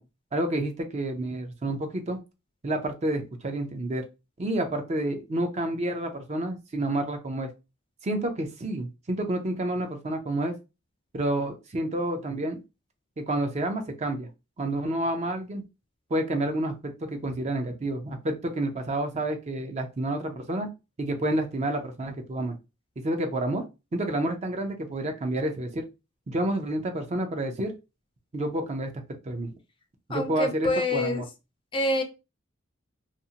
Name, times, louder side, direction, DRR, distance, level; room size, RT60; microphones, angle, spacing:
voice 1, 0.3-2.2 2.6-4.0 4.4-7.5 8.0-10.6 11.1-12.6 13.2-14.3 14.6-15.6 16.1-20.7 21.0-22.6 23.0-23.6 23.9-25.9 26.3-27.7 28.3-29.5 30.1-31.3, right 1 dB, 35° right, 0.5 m, -29 dB
voice 2, 30.1-31.2 31.7-32.0, left 1 dB, 25° left, 0.4 m, -26 dB
2.6 x 2.4 x 2.7 m
head